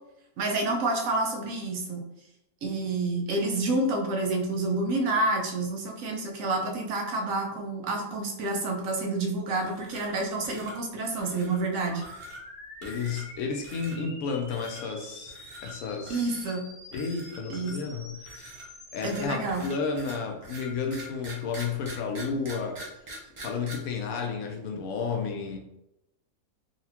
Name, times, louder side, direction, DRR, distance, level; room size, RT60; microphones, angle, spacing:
voice 1, 0.4-2.1 2.6-12.1 16.1-16.6 17.5-17.8 19.0-19.7, right 2 dB, 70° right, 2 dB, 1.0 m, -29 dB
sound 1, 9.6-10.2 10.4-10.8 11.2-11.6 12.0-12.4 12.8-13.4 13.6-14.0 14.5-14.8 15.3-15.7 16.1-16.5 16.9-17.9 18.3-23.7, right 1 dB, 40° right, 0.4 m, -44 dB
sound 2, 11.8-19.3, left 1 dB, 20° left, 0.7 m, -47 dB
voice 2, 12.8-15.4 15.6-16.4 16.9-18.6 18.9-22.8 23.4-25.6, left 5 dB, 75° left, 2 dB, 1.0 m, -32 dB
4.0 x 2.4 x 2.8 m, 0.88 s
omnidirectional pair, 1.6 m